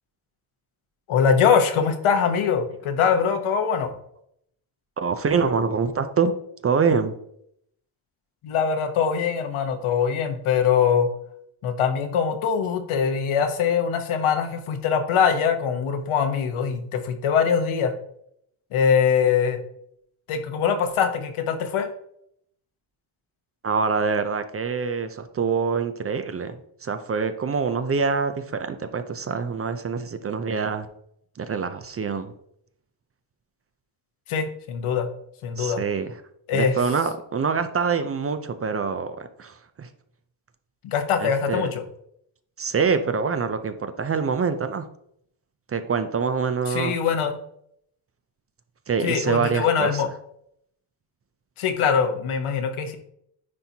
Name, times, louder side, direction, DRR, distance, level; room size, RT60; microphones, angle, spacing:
voice 1, 1.1-3.9 8.4-11.1 11.6-17.9 18.7-19.6 20.3-21.9 34.3-35.1 35.4-35.8 36.5-36.7 40.8-41.8 46.7-47.4 49.0-50.1 51.6-53.0, left 7 dB, 85° left, 6 dB, 1.0 m, -22 dB
voice 2, 5.0-6.3 6.6-7.1 23.6-30.9 31.4-32.3 35.6-36.1 36.5-39.9 41.2-41.7 42.6-44.9 45.7-46.9 48.9-50.0, right 5 dB, 30° right, 10 dB, 0.4 m, -25 dB
9.6 x 4.3 x 2.8 m, 0.72 s
cardioid pair, 120°, 48 cm